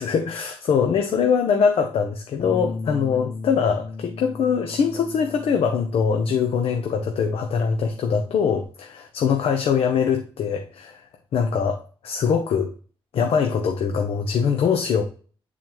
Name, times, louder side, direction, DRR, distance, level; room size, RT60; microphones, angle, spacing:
voice 1, 0.0-11.0 11.3-12.7 13.1-15.0, left 6 dB, 80° left, 0.8 m, -22 dB
Bass guitar, 2.4-8.6, left 3 dB, 45° left, 0.7 m, -36 dB
9.0 x 4.1 x 3.0 m
wide cardioid pair, 125°, 10 cm